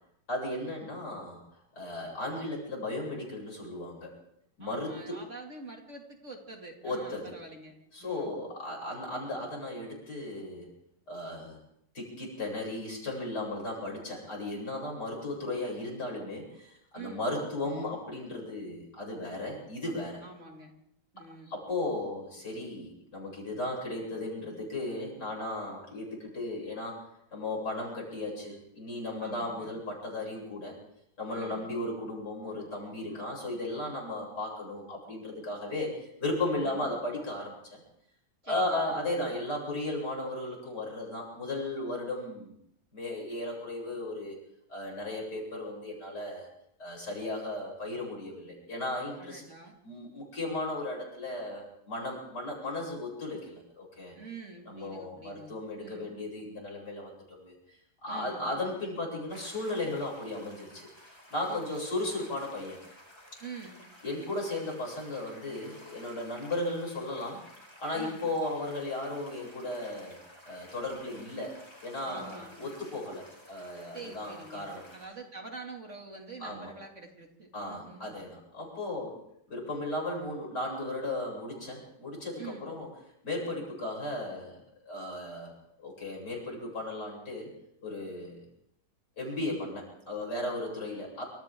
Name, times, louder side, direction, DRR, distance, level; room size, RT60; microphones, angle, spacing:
voice 1, 0.3-4.1 4.6-5.2 6.8-7.4 7.9-10.7 11.1-11.6 11.9-20.2 21.5-27.0 27.3-30.8 31.2-37.8 38.4-42.6 42.9-44.4 44.7-46.5 46.8-49.4 49.8-54.1 54.7-62.8 64.0-67.4 67.8-70.2 70.5-71.5 71.8-74.8 76.4-76.7 77.5-79.2 79.5-82.9 83.2-85.5 85.8-87.5 87.8-88.5 89.2-91.2, left 2 dB, 65° left, -2 dB, 8.4 m, -36 dB
voice 2, 4.6-8.3 13.4-13.7 16.9-17.3 20.2-20.7 21.1-21.5 29.2-29.7 31.3-31.8 36.6-36.9 38.4-39.0 49.2-49.8 54.1-56.2 58.1-58.6 61.5-61.9 63.4-63.8 67.9-68.3 72.0-72.6 73.9-74.6 74.9-78.1 82.4-82.7, right 3 dB, 40° right, 2 dB, 3.1 m, -46 dB
sound 1, 59.3-75.1, equal, 15° left, 5.1 m, -54 dB
27.5 x 26.5 x 3.8 m, 0.75 s
omnidirectional pair, 1.9 m